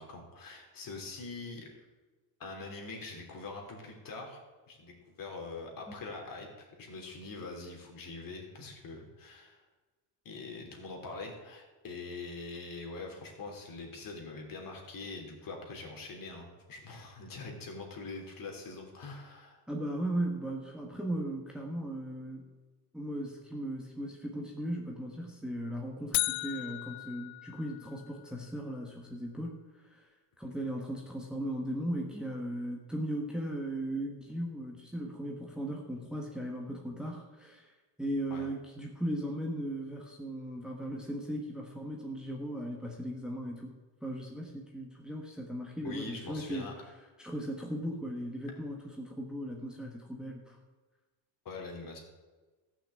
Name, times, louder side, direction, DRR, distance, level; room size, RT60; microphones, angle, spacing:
voice 1, 0.0-1.7 2.4-9.6 10.2-19.6 38.3-38.5 45.8-46.7 51.4-52.0, left 3 dB, 45° left, 2 dB, 3.3 m, -43 dB
voice 2, 19.7-22.5 22.9-29.6 29.9-30.0 30.4-37.7 38.0-43.7 44.0-46.7 47.2-50.6, right 1 dB, ahead, 0 dB, 1.4 m, -37 dB
sound 1, 26.1-28.3, left 19 dB, 80° left, 0.6 m, -35 dB
14.5 x 6.3 x 7.9 m, 1.3 s
cardioid pair, 140°, 45 cm